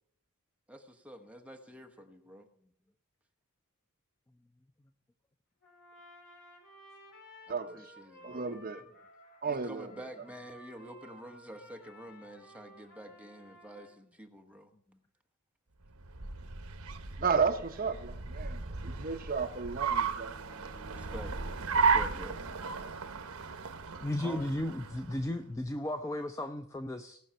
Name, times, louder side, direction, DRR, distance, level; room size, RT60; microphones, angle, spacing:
voice 1, 0.7-2.5 7.5-8.6 9.5-14.7 20.6-21.4 21.7-22.4 24.2-24.5, equal, 5° right, 4 dB, 1.0 m, -48 dB
Trumpet, 5.6-14.0, left 1 dB, 55° left, 4.9 m, -55 dB
voice 2, 7.5-7.9 8.2-8.8 9.4-10.1 17.2-20.4, right 5 dB, 40° right, 6 dB, 0.9 m, -33 dB
Car, 15.8-25.4, right 5 dB, 75° right, 1.0 m, -34 dB
voice 3, 24.0-27.2, left 1 dB, 15° left, 8 dB, 0.5 m, -35 dB
18.0 x 6.3 x 5.6 m, 0.69 s
head